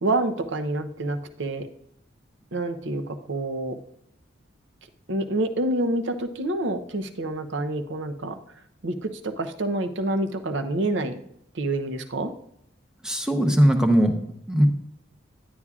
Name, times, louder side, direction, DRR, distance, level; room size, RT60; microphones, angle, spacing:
voice 1, 0.0-1.7 2.5-3.8 5.1-8.4 8.8-11.1 11.5-12.3, right 2 dB, 70° right, 8 dB, 0.7 m, -27 dB
voice 2, 13.0-14.2 14.5-14.7, equal, 5° right, 4 dB, 0.8 m, -19 dB
11.0 x 9.5 x 2.4 m, 0.74 s
head